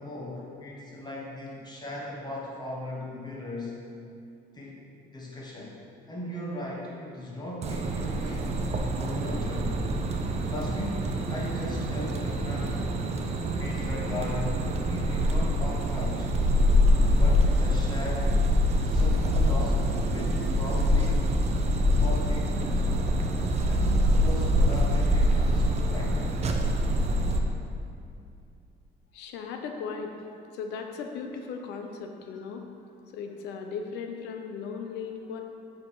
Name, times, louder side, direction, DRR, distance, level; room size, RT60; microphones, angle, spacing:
voice 1, 0.0-3.8 4.5-4.8 5.1-5.8 6.1-8.5 8.9-9.8 10.4-12.9 13.6-16.3 17.2-18.4 18.8-21.3 21.8-22.9 23.6-26.2, left 1 dB, 25° left, -4 dB, 1.3 m, -38 dB
sound 1, 7.6-27.4, equal, 40° right, 0.6 m, -25 dB
voice 2, 29.1-30.3 30.5-32.7 33.1-35.4, left 5 dB, 90° left, 4 dB, 0.7 m, -37 dB
5.8 x 4.9 x 4.8 m, 2.4 s
cardioid pair, 110°, 17 cm